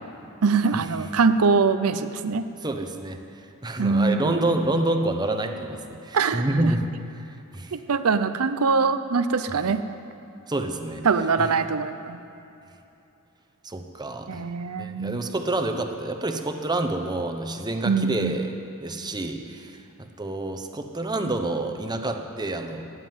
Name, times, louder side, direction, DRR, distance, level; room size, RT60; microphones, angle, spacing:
voice 1, 0.4-2.5 3.8-4.5 6.1-6.7 7.7-9.8 11.0-12.2 14.3-15.2 17.8-18.4, right 4 dB, 75° right, 10 dB, 0.6 m, -23 dB
voice 2, 2.6-3.2 3.6-6.9 7.5-7.8 10.5-11.0 13.6-14.4 14.8-18.5 18.8-19.8 20.2-22.8, right 2 dB, 20° right, 5 dB, 0.9 m, -28 dB
17.0 x 7.5 x 9.3 m, 2.8 s
head